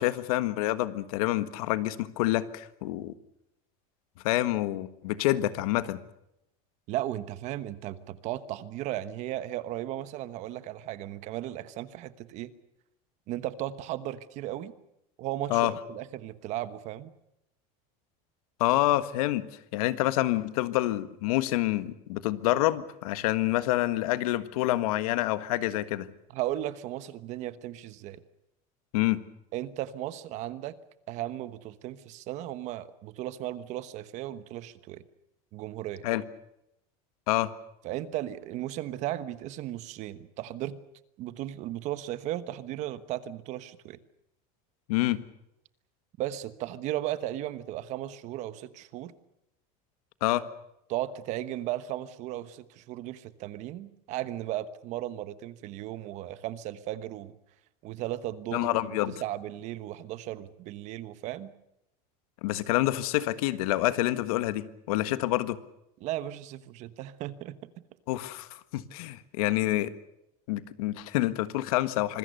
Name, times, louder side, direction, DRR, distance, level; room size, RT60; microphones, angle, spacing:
voice 1, 0.0-3.1 4.2-6.0 15.5-15.7 18.6-26.1 28.9-29.2 36.0-36.2 37.3-37.5 44.9-45.2 50.2-50.4 58.5-59.2 62.4-65.6 68.1-69.9 70.5-72.2, left 16 dB, 85° left, 13 dB, 1.6 m, -27 dB
voice 2, 6.9-12.5 13.3-14.7 15.2-17.1 26.3-28.2 29.5-30.8 31.1-35.0 35.5-36.0 37.8-40.8 41.2-44.0 46.2-49.1 50.9-57.3 57.8-58.8 59.2-61.5 66.0-67.6, right 13 dB, 40° right, 14 dB, 1.2 m, -36 dB
26.5 x 21.0 x 6.7 m, 0.83 s
cardioid pair, 175°, 18 cm